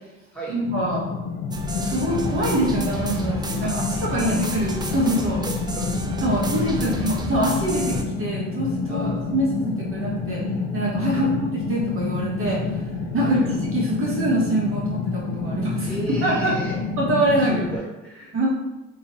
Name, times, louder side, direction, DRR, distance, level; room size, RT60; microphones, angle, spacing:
voice 1, 0.5-1.0 1.8-5.4 6.2-10.4 10.7-12.6 13.1-13.4 13.7-16.5 17.0-17.6 18.3-18.5, right 1 dB, 45° right, -5 dB, 1.0 m, -24 dB
sound 1, 0.6-17.8, left 5 dB, 85° left, 0.5 m, -28 dB
sound 2, 1.5-8.0, right 1 dB, 15° right, 0.4 m, -31 dB
voice 2, 3.6-4.4 5.4-5.9 6.4-6.9 8.9-9.2 11.1-11.3 13.2-13.5 15.9-16.8 17.4-18.5, right 2 dB, 5° left, -7 dB, 1.4 m, -35 dB
2.8 x 2.7 x 4.1 m, 1.0 s
cardioid pair, 90°, 30 cm